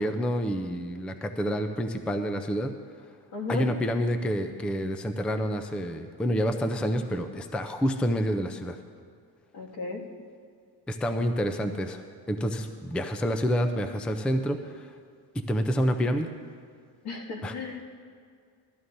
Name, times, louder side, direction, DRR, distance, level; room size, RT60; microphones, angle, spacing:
voice 1, 0.0-2.7 3.5-8.8 10.9-12.0 12.3-14.9 15.5-16.3 17.4-17.5, equal, 5° left, 7 dB, 0.4 m, -28 dB
voice 2, 3.3-3.7 9.5-10.0 17.0-17.8, left 4 dB, 75° left, -2 dB, 2.1 m, -34 dB
17.0 x 12.5 x 2.6 m, 2.2 s
cardioid pair, 135°, 40 cm